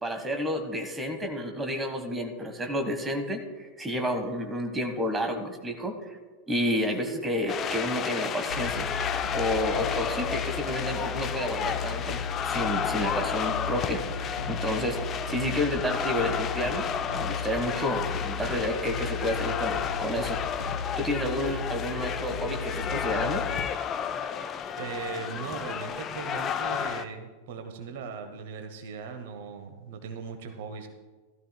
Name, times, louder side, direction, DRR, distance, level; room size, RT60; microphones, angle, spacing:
voice 1, 0.0-6.2 6.5-8.9 9.3-12.2 12.5-14.0 14.5-15.0 15.3-16.9 17.1-20.4 20.6-23.4, equal, 15° right, 6 dB, 1.3 m, -30 dB
sound 1, 7.5-27.0, left 8 dB, 30° left, 0.6 m, -32 dB
sound 2, 8.5-23.7, left 5 dB, 75° left, 0.8 m, -36 dB
voice 2, 24.8-30.9, right 6 dB, 55° right, 6 dB, 1.0 m, -38 dB
15.5 x 13.0 x 2.2 m, 1.3 s
figure-of-eight pair, 90°, 0 cm